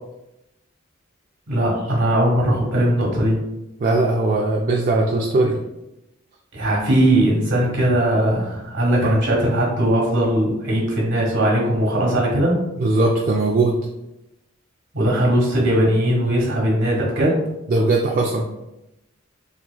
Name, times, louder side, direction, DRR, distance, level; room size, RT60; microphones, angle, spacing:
voice 1, 1.5-3.4 6.5-12.6 14.9-17.4, right 1 dB, 60° right, -2 dB, 1.4 m, -19 dB
voice 2, 3.8-5.6 9.0-9.2 12.8-13.8 17.7-18.4, right 2 dB, 45° right, -1 dB, 0.3 m, -19 dB
3.9 x 2.9 x 2.2 m, 0.91 s
head